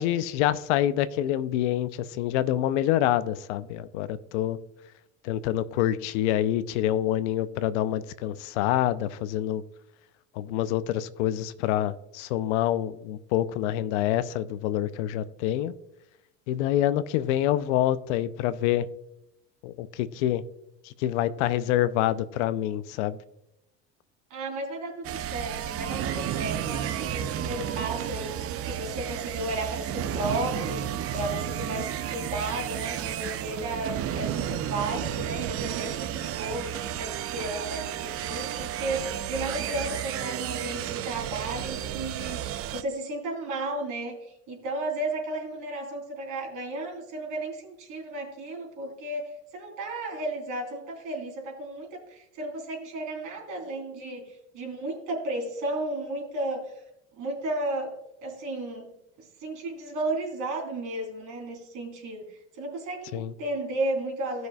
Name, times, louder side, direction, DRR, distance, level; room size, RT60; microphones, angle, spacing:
voice 1, 0.0-4.6 5.2-9.6 10.4-15.7 16.5-18.9 19.6-20.4 20.8-23.2 63.1-63.3, left 12 dB, 80° left, 14 dB, 0.7 m, -26 dB
voice 2, 24.3-56.7 57.1-57.9 58.2-58.9 59.2-64.5, right 2 dB, 60° right, 1 dB, 3.4 m, -34 dB
sound 1, 25.0-42.8, right 11 dB, 40° right, 0.6 m, -32 dB
15.5 x 6.2 x 2.3 m, 0.86 s
supercardioid pair, 95°, 35 cm